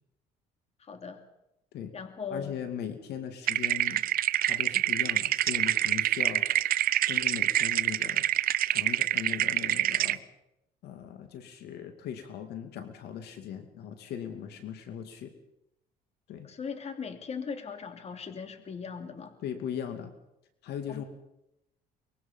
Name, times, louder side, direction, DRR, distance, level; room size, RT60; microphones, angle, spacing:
voice 1, 0.8-1.2 1.9-2.6 16.4-19.3 20.9-21.0, left 5 dB, 40° left, 6 dB, 2.8 m, -39 dB
voice 2, 2.3-4.1 4.4-6.5 7.1-8.2 8.6-10.2 10.8-15.3 16.3-16.5 19.4-20.1 20.6-21.0, left 9 dB, 75° left, 7 dB, 2.5 m, -39 dB
sound 1, 3.5-10.2, right 13 dB, 60° right, 0.7 m, -26 dB
24.0 x 22.0 x 5.7 m, 0.84 s
cardioid pair, 110°, 17 cm